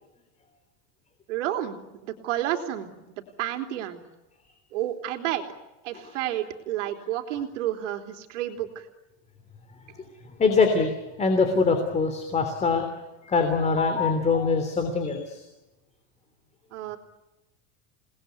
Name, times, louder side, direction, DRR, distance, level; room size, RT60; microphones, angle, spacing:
voice 1, 1.3-4.0 4.7-5.4 5.8-8.9 16.7-17.0, right 12 dB, 80° right, 4 dB, 3.5 m, -30 dB
voice 2, 10.4-12.8 13.2-15.4, left 4 dB, 20° left, 6 dB, 3.2 m, -23 dB
29.5 x 19.5 x 9.5 m, 1.0 s
supercardioid pair, 150°, 36 cm